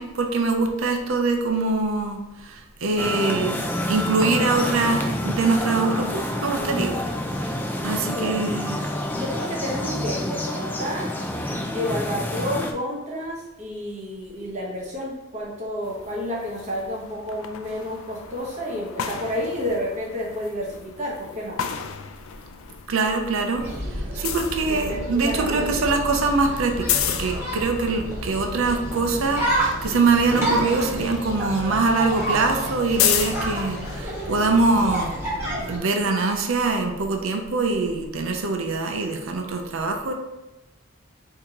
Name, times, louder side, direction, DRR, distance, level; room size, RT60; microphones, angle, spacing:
voice 1, 0.0-7.1 7.4-7.5 7.8-8.8 22.9-23.6 23.9-35.1 35.7-40.1, right 3 dB, 75° right, 3 dB, 0.6 m, -23 dB
sound 1, 3.0-12.7, left 1 dB, 10° left, 0.4 m, -28 dB
voice 2, 8.0-11.1 11.7-21.6 24.7-25.9, left 1 dB, 35° right, -3 dB, 1.0 m, -30 dB
sound 2, 15.8-22.9 23.2-34.0, left 9 dB, 75° left, 0.4 m, -33 dB
sound 3, 23.6-35.8, right 1 dB, 10° right, 1.3 m, -30 dB
4.5 x 2.8 x 3.7 m, 1.0 s
head